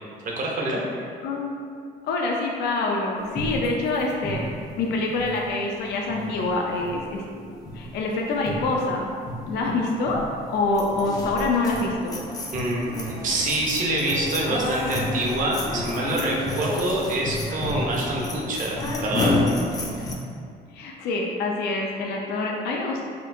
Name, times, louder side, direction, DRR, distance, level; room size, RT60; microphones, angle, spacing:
voice 1, 0.2-0.8 12.5-19.3, right 1 dB, 50° right, -2 dB, 0.7 m, -26 dB
voice 2, 2.0-4.5 4.8-7.5 7.7-9.1 9.4-10.2 10.5-12.3 20.7-23.0, left 3 dB, 75° left, -1 dB, 0.4 m, -26 dB
sound 1, 3.4-5.8 6.1-6.5 6.8-7.4 7.6-7.9 8.3-8.9 9.2-9.6 10.1-10.4 10.7-20.1, left 1 dB, 20° left, 0.4 m, -30 dB
4.3 x 2.4 x 2.5 m, 2.3 s
cardioid pair, 110°, 17 cm